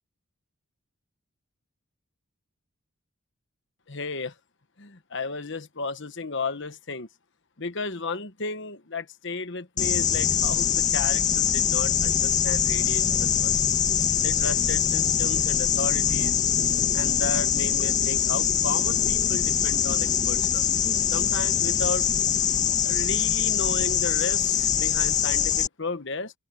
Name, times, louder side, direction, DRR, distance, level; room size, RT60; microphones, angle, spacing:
voice 1, 3.9-4.3 4.8-7.1 7.6-13.6 14.2-16.4 16.9-20.7 21.1-22.1 22.8-26.3, left 3 dB, 55° left, 1.3 m, -34 dB
sound 1, 9.8-25.7, left 8 dB, 35° left, 1.9 m, -23 dB
open air
head